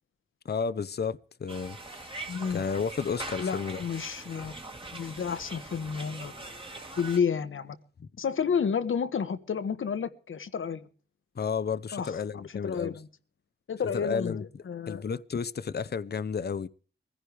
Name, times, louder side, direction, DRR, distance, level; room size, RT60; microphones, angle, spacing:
voice 1, 0.4-1.8 2.5-3.8 8.0-8.1 11.3-12.9 13.9-14.4 14.9-16.7, left 6 dB, 55° left, 0.8 m, -32 dB
sound 1, 1.5-7.2, right 2 dB, 25° right, 2.1 m, -42 dB
voice 2, 2.3-2.6 3.4-4.6 4.9-6.3 7.0-7.8 8.2-10.9 11.9-12.2 12.6-13.1 13.7-14.4 14.6-15.0, left 6 dB, 85° left, 1.4 m, -31 dB
22.5 x 16.0 x 3.4 m
wide cardioid pair, 105°, 20 cm